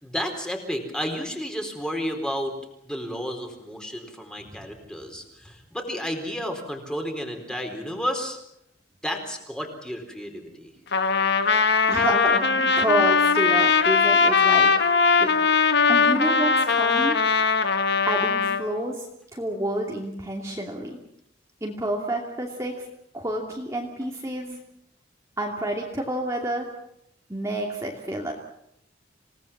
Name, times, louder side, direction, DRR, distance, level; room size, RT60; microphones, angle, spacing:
voice 1, 0.0-2.6 2.8-8.4 9.0-10.7, equal, 5° left, 4 dB, 4.2 m, -32 dB
Trumpet, 10.9-18.6, left 5 dB, 60° left, 1.6 m, -20 dB
voice 2, 11.9-14.7 15.2-15.3 15.9-17.2 18.1-19.1 19.3-21.0 21.6-22.9 23.1-24.6 25.4-26.7 27.3-28.3, right 1 dB, 15° right, -1 dB, 2.7 m, -29 dB
28.0 x 18.5 x 7.4 m, 0.77 s
head